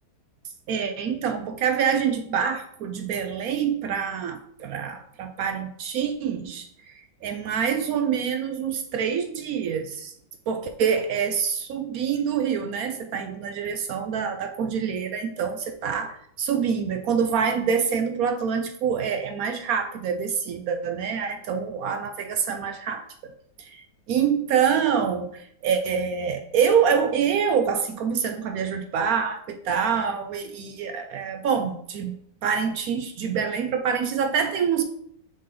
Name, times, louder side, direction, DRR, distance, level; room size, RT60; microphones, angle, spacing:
voice 1, 0.7-10.1 10.5-23.0 23.6-32.2 32.4-34.8, right 7 dB, 75° right, 6 dB, 0.8 m, -26 dB
6.3 x 4.1 x 3.8 m, 0.67 s
omnidirectional pair, 2.1 m